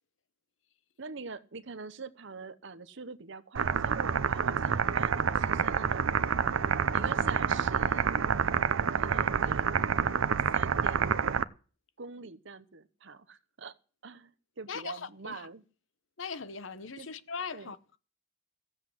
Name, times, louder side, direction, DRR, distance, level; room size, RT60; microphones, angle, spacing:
voice 1, 1.0-6.0 6.9-8.1 8.9-9.7 10.5-11.4 12.0-13.7 14.0-15.6 17.0-17.1 17.5-17.7, right 4 dB, 65° right, 0.9 m, -44 dB
sound 1, 3.5-11.4, right 6 dB, 90° right, 0.6 m, -28 dB
voice 2, 14.7-15.5 16.2-18.0, left 5 dB, 70° left, 0.9 m, -40 dB
15.5 x 7.8 x 7.7 m
head